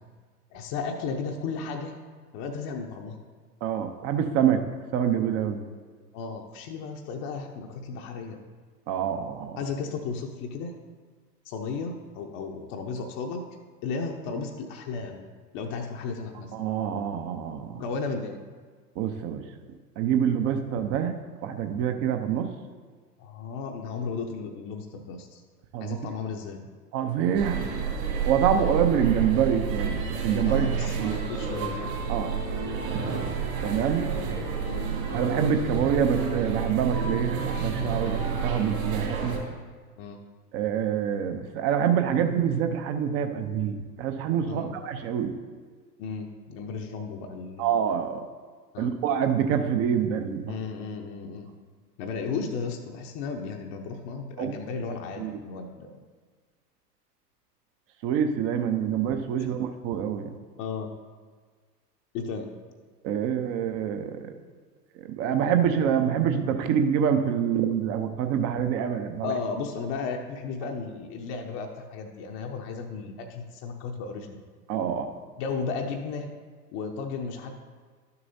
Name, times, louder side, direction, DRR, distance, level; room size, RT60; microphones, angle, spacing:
voice 1, 0.5-2.0 2.3-3.2 6.1-8.4 9.6-10.7 11.4-13.4 13.8-15.3 15.5-16.5 17.7-18.4 23.2-25.4 25.8-26.7 30.5-32.0 33.0-33.3 34.6-34.9 38.0-38.3 40.0-40.2 44.5-44.7 46.0-47.7 48.7-48.9 50.5-51.5 52.0-56.0 59.4-59.5 60.6-61.0 62.1-62.5 69.2-74.4 75.4-76.3 76.7-77.5, left 5 dB, 35° left, 2 dB, 0.7 m, -34 dB
voice 2, 3.6-4.6 4.9-5.6 8.9-9.5 16.5-17.8 19.0-19.4 20.0-21.1 21.4-22.5 25.7-26.0 26.9-27.6 28.3-31.1 32.1-32.3 32.9-33.2 33.6-34.1 35.1-39.4 40.5-45.3 47.6-48.2 48.8-50.6 54.4-54.5 55.2-55.4 58.0-60.3 63.0-64.3 65.0-69.3 74.7-75.1, right 8 dB, 30° right, 7 dB, 0.6 m, -26 dB
sound 1, 27.3-39.4, right 5 dB, 55° right, 2.5 m, -29 dB
12.0 x 6.8 x 2.7 m, 1.5 s
figure-of-eight pair, 95°, 49 cm